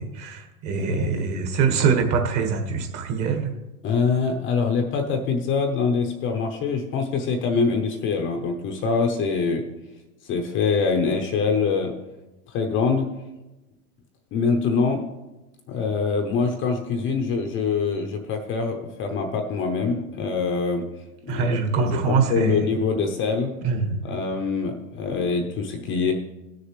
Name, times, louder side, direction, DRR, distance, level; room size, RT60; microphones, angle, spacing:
voice 1, 0.0-3.5 21.3-22.7 23.6-24.1, right 5 dB, 35° right, 4 dB, 1.6 m, -24 dB
voice 2, 0.8-1.2 3.8-9.6 10.2-11.9 12.5-13.1 14.3-15.0 15.7-20.9 21.2-23.5 24.0-26.1, left 5 dB, 25° left, 4 dB, 0.8 m, -24 dB
16.5 x 6.7 x 3.2 m, 1.0 s
hypercardioid pair, 120°, 47 cm